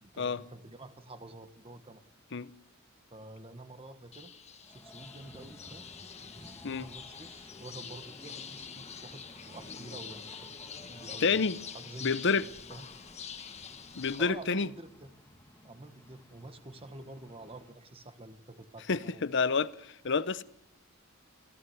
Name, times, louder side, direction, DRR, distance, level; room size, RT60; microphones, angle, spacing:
voice 1, 0.0-2.0 3.1-4.3 4.7-5.9 6.2-10.5 10.7-12.9 14.2-15.1 15.6-19.2, right 2 dB, 30° right, 1.4 m, -48 dB
sound 1, 4.1-14.2, left 6 dB, 30° left, 1.6 m, -46 dB
sound 2, 4.6-17.7, left 1 dB, 15° left, 1.8 m, -56 dB
voice 2, 11.2-11.6 12.0-12.5 14.0-14.7 18.9-20.4, left 5 dB, 60° left, 0.8 m, -29 dB
25.0 x 16.0 x 8.0 m
head